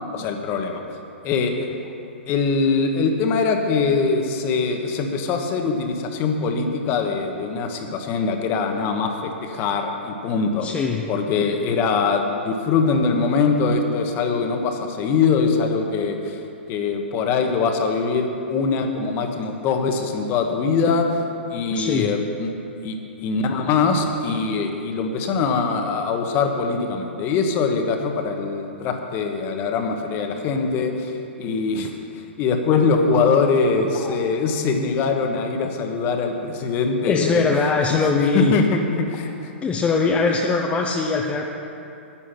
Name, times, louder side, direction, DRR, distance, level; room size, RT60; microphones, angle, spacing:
voice 1, 0.1-0.8 1.2-1.7 2.3-10.7 11.1-16.4 16.7-21.2 21.5-22.5 22.8-31.9 32.4-37.4 37.9-38.0 38.3-39.5, left 4 dB, 35° left, 4 dB, 1.3 m, -22 dB
voice 2, 10.6-11.1 21.7-22.1 33.9-34.1 37.0-38.5 39.6-41.4, left 4 dB, 20° left, 0 dB, 0.8 m, -21 dB
10.0 x 9.9 x 6.0 m, 2.8 s
hypercardioid pair, 115°, 6 cm